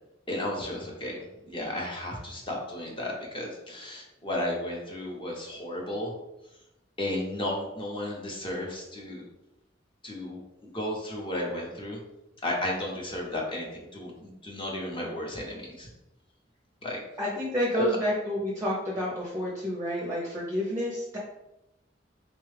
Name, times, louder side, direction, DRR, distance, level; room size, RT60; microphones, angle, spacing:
voice 1, 0.3-6.1 7.0-9.3 10.0-12.0 12.4-15.9 16.8-17.0 17.7-17.9, left 1 dB, 30° left, -1 dB, 0.8 m, -34 dB
voice 2, 17.2-21.2, equal, 15° right, -4 dB, 0.6 m, -29 dB
4.1 x 2.3 x 3.2 m, 0.94 s
head